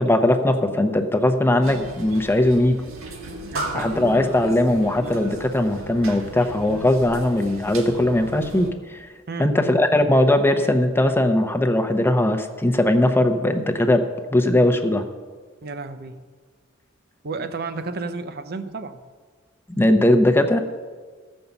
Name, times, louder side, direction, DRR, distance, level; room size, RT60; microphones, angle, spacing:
voice 1, 0.0-2.8 3.7-9.0 9.4-14.0 14.3-15.0 19.8-20.6, left 1 dB, 10° left, 6 dB, 0.7 m, -19 dB
sound 1, 1.6-8.7, right 2 dB, 85° right, 1.7 m, -35 dB
voice 2, 3.5-4.0 9.3-9.6 15.6-16.3 17.2-19.0, right 3 dB, 50° right, 9 dB, 0.7 m, -32 dB
14.5 x 5.4 x 7.1 m, 1.5 s
head